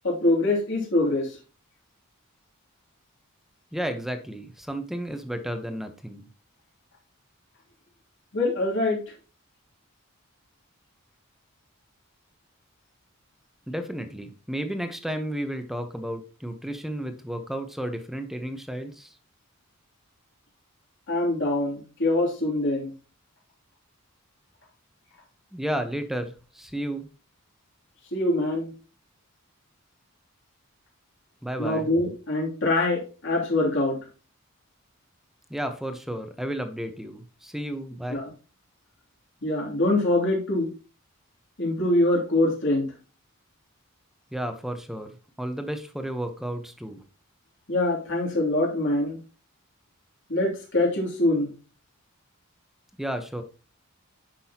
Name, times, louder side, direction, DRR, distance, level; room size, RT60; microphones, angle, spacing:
voice 1, 0.0-1.4 8.3-9.0 21.1-22.9 28.1-28.7 31.6-34.0 38.1-38.3 39.4-40.7 41.6-42.8 47.7-49.2 50.3-51.5, left 2 dB, 60° left, -2 dB, 2.9 m, -24 dB
voice 2, 3.7-6.3 13.7-19.2 25.5-27.1 31.4-31.9 35.5-38.2 44.3-47.0 53.0-53.4, right 1 dB, ahead, 7 dB, 0.9 m, -32 dB
9.8 x 6.2 x 2.9 m, 0.35 s
head